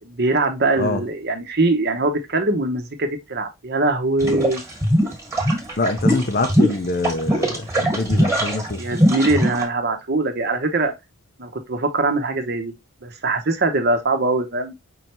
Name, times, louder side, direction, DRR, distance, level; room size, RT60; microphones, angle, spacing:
voice 1, 0.0-4.6 8.8-10.9 11.4-12.7 13.0-14.7, right 2 dB, 45° right, 0.9 m, -22 dB
sound 1, 4.2-9.6, equal, 15° right, 1.4 m, -20 dB
voice 2, 5.8-8.8, left 2 dB, 40° left, 0.5 m, -24 dB
5.4 x 3.3 x 2.9 m
head